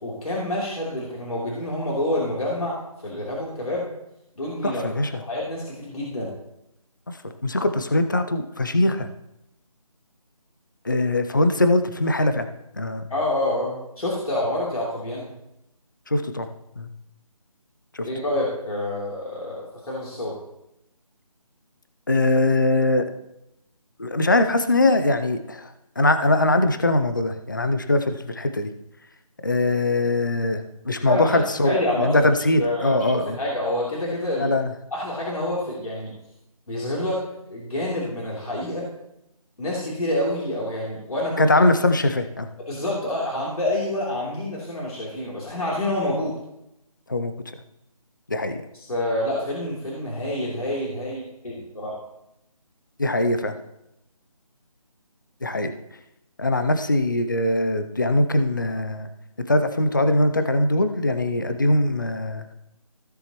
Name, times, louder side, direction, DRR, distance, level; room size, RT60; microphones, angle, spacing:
voice 1, 0.0-3.9 4.4-4.8 5.2-6.3 13.1-15.3 18.0-20.4 31.0-34.5 34.9-36.1 36.7-38.9 39.6-41.5 42.7-46.3 48.7-52.0, left 1 dB, 70° left, -5 dB, 3.2 m, -27 dB
voice 2, 4.6-5.1 7.1-9.1 10.8-12.5 12.8-13.0 16.1-16.5 16.8-16.9 17.9-18.1 22.1-23.0 24.0-28.7 29.4-33.4 34.4-34.7 41.4-42.5 47.1-47.3 48.3-48.6 53.0-53.6 55.4-55.7 56.4-59.1 59.5-62.5, left 2 dB, 30° left, 9 dB, 0.5 m, -22 dB
16.0 x 7.0 x 3.0 m, 0.85 s
figure-of-eight pair, 180°, 19 cm